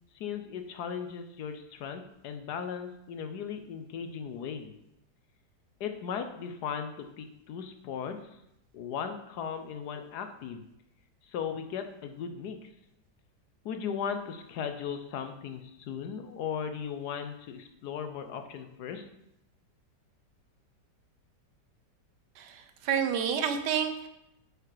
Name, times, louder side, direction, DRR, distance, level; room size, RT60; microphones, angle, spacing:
voice 1, 0.1-4.7 5.8-8.2 8.7-10.7 11.2-12.6 13.6-19.0, left 7 dB, 70° left, 7 dB, 1.2 m, -37 dB
voice 2, 22.4-24.1, right 8 dB, 75° right, 7 dB, 1.4 m, -29 dB
7.9 x 5.1 x 4.8 m, 0.82 s
omnidirectional pair, 1.9 m